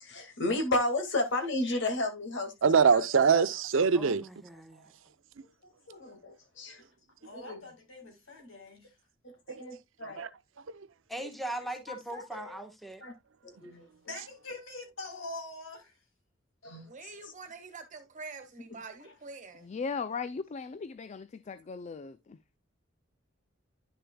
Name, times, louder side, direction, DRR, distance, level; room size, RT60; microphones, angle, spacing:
voice 1, 0.0-2.5 2.8-3.1 3.3-3.4 5.9-6.8 7.3-7.6 9.2-10.3 13.0-13.1 13.4-13.8 16.6-16.9, left 2 dB, 60° left, 1.9 m, -32 dB
voice 2, 2.6-4.2 7.5-7.6 9.5-9.6 10.0-10.3 10.7-10.8, right 5 dB, 70° right, 0.6 m, -24 dB
voice 3, 3.9-4.9 11.1-13.0, right 1 dB, ahead, 1.2 m, -40 dB
voice 4, 7.2-8.9 11.9-12.6 14.1-15.9, left 2 dB, 80° left, 4.0 m, -44 dB
voice 5, 16.8-19.7, right 4 dB, 40° right, 1.6 m, -46 dB
voice 6, 19.6-22.4, left 5 dB, 35° left, 0.4 m, -37 dB
10.5 x 6.7 x 2.2 m
head